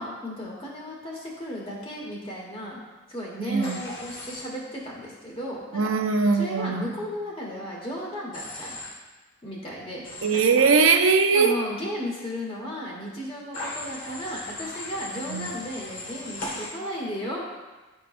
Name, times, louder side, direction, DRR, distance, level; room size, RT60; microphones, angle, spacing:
voice 1, 0.0-2.8 3.1-5.9 6.3-8.7 9.4-10.0 10.3-10.7 11.3-17.4, equal, 25° left, -3 dB, 1.4 m, -35 dB
voice 2, 3.5-3.8 5.7-6.9 10.2-11.5 15.3-15.5, right 5 dB, 80° right, 5 dB, 0.5 m, -21 dB
Human voice / Train, 3.6-4.4 8.3-8.9 10.0-10.5 13.5-16.7, left 1 dB, 75° left, 1.9 m, -37 dB
10.0 x 4.5 x 2.5 m, 1.2 s
head